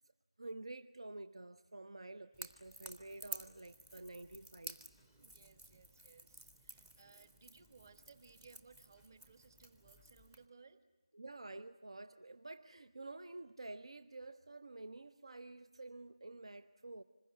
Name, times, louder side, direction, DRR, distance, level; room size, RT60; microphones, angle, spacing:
voice 1, 0.4-4.8 11.1-17.0, right 2 dB, 60° right, 10 dB, 0.8 m, -50 dB
Crackle / Crack, 2.3-10.5, right 1 dB, 10° right, 0.8 m, -53 dB
voice 2, 5.2-10.8, right 4 dB, 35° right, 9 dB, 1.5 m, -63 dB
26.0 x 21.0 x 9.5 m, 1.2 s
figure-of-eight pair, 165°, 3 cm